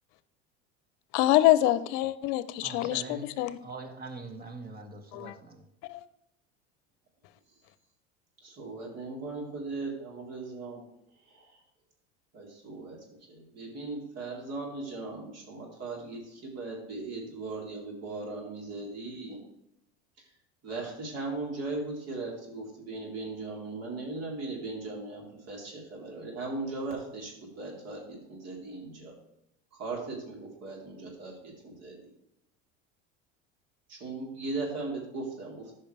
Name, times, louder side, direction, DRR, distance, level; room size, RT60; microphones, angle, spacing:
voice 1, 1.1-3.6 5.1-5.3 5.9-6.0, left 15 dB, 65° left, 0.7 m, -25 dB
voice 2, 2.6-5.6, right 3 dB, 30° right, 2.0 m, -43 dB
voice 3, 8.4-10.8 11.3-11.6 12.3-13.0 13.3-19.4 20.2-20.3 20.6-29.1 29.7-32.1 33.9-35.7, right 3 dB, 50° right, 3.9 m, -38 dB
14.0 x 5.6 x 3.4 m
hypercardioid pair, 90°, 33 cm